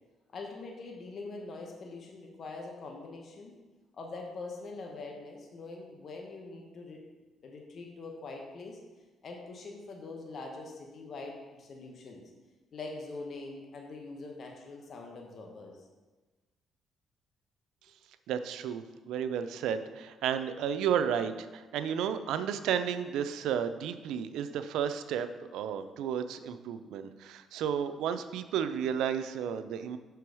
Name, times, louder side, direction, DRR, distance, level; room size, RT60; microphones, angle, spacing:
voice 1, 0.3-3.5 4.0-7.0 7.4-8.8 9.2-12.2 12.7-15.8, left 3 dB, 55° left, 1 dB, 0.9 m, -43 dB
voice 2, 18.3-25.3 25.5-30.0, right 8 dB, 90° right, 10 dB, 0.4 m, -32 dB
6.0 x 4.6 x 4.7 m, 1.2 s
cardioid pair, 90°, 0 cm